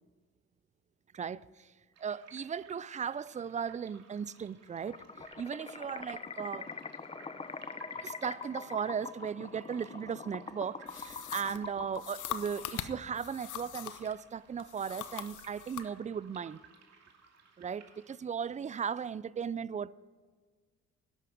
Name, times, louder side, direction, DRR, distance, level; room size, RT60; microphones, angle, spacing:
voice 1, 1.1-1.7 2.0-6.7 8.0-16.6 17.6-20.0, right 7 dB, 25° right, 0.4 m, -37 dB
sound 1, 1.9-18.1, right 5 dB, 55° right, 2.5 m, -60 dB
sound 2, 4.8-13.3, left 4 dB, 20° left, 0.7 m, -44 dB
sound 3, 10.9-14.2 14.6-15.9, left 11 dB, 80° left, 0.9 m, -42 dB
12.5 x 10.5 x 5.2 m
cardioid pair, 90°, 30 cm